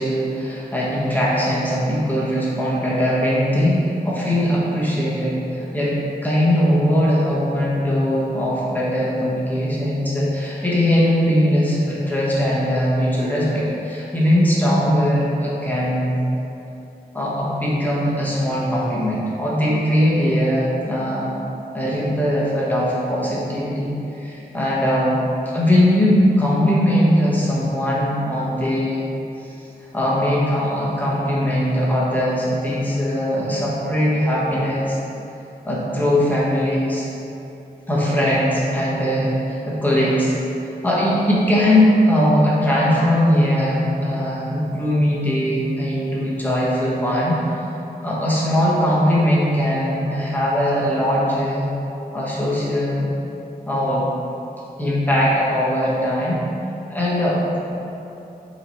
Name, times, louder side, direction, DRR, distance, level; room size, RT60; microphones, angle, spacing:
voice 1, 0.0-5.9 6.2-16.2 17.1-21.3 21.7-23.9 24.2-25.1 25.5-29.1 29.4-29.5 29.9-35.0 35.6-37.1 37.9-40.3 40.8-47.4 48.0-51.7 52.1-53.1 53.7-54.1 54.8-56.4 56.9-57.6, equal, 10° left, -7 dB, 1.4 m, -20 dB
7.7 x 4.2 x 3.2 m, 2.8 s
wide cardioid pair, 115°, 16 cm